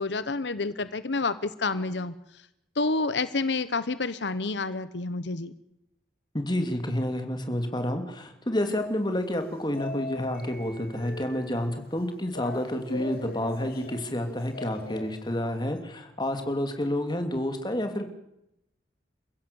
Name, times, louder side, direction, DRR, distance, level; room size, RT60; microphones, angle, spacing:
voice 1, 0.0-2.4 2.7-5.5, left 3 dB, 80° left, 14 dB, 1.0 m, -29 dB
voice 2, 6.3-18.1, left 1 dB, 25° left, 6 dB, 2.9 m, -29 dB
sound 1, 8.6-15.6, left 2 dB, 55° left, 3.4 m, -42 dB
29.5 x 16.0 x 7.1 m, 0.83 s
head